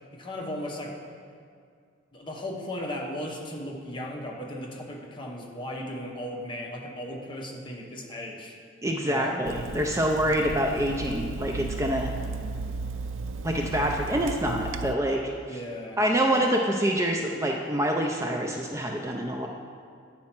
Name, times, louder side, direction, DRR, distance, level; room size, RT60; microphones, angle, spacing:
voice 1, 0.1-1.0 2.1-8.5 9.0-9.5 15.4-16.0 16.3-16.5, left 1 dB, 25° left, -1 dB, 0.9 m, -36 dB
voice 2, 8.8-12.1 13.4-15.6 16.0-19.5, equal, 15° right, 1 dB, 0.4 m, -26 dB
Water tap faucet / Sink (filling or washing), 9.4-15.0, right 4 dB, 85° right, 0.4 m, -35 dB
8.6 x 4.3 x 5.9 m, 2.2 s
head